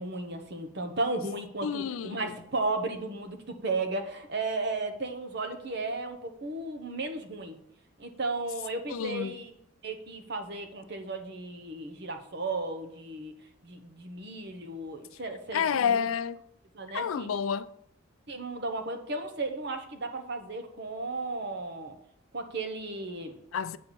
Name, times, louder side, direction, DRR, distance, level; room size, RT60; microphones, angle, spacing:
voice 1, 0.0-7.6 8.0-9.5 9.8-13.4 13.6-16.1 16.7-17.3 18.3-22.0 22.3-23.4, right 2 dB, 50° right, 1.0 m, -34 dB
voice 2, 1.6-2.3 8.9-9.3 15.5-16.4 16.9-17.7 23.5-23.8, left 7 dB, 80° left, 0.4 m, -29 dB
8.4 x 4.5 x 6.8 m
head